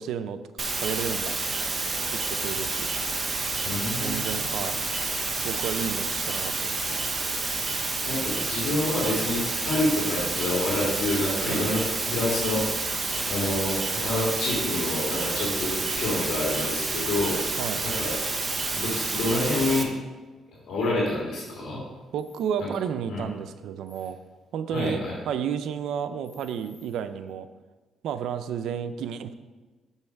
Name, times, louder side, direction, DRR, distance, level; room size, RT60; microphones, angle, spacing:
voice 1, 0.0-1.7 2.1-2.8 3.9-4.8 5.4-7.0 11.5-11.9 17.6-17.8 22.1-24.2 24.5-27.5 28.0-29.3, right 8 dB, 80° right, 11 dB, 0.5 m, -32 dB
sound 1, 0.6-19.8, right 3 dB, 30° right, 0.9 m, -29 dB
voice 2, 3.6-4.2 8.0-12.7 13.3-17.4 17.8-18.1 18.7-19.9 20.7-21.8 23.1-23.3 24.7-25.1, left 2 dB, 70° left, -5 dB, 2.5 m, -27 dB
7.0 x 5.6 x 4.6 m, 1.3 s
cardioid pair, 90°, 0 cm